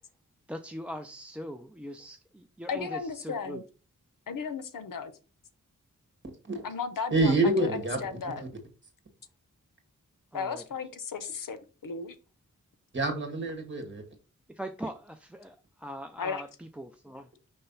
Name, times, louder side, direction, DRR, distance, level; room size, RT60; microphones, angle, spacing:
voice 1, 0.5-3.6 10.3-10.6 14.5-17.3, equal, 5° right, 0.3 m, -41 dB
voice 2, 2.7-3.6 4.3-5.1 6.6-8.4 10.3-12.2 16.2-16.4, left 5 dB, 80° left, 0.8 m, -35 dB
voice 3, 7.1-8.0 12.9-14.0, right 2 dB, 35° right, 1.9 m, -26 dB
5.5 x 3.3 x 5.4 m
wide cardioid pair, 125°, 32 cm